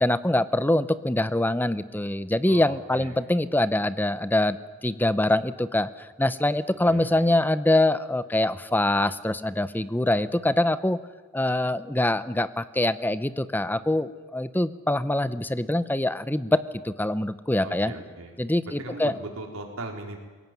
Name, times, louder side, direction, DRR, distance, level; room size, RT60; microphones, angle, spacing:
voice 1, 0.0-4.6 4.8-11.0 11.3-17.9 18.4-19.1, left 1 dB, 10° left, 14 dB, 0.7 m, -24 dB
voice 2, 2.5-3.2 6.9-7.3 17.6-18.3 18.6-20.2, right 2 dB, 80° right, 2 dB, 4.4 m, -38 dB
22.0 x 17.5 x 9.2 m, 1.4 s
head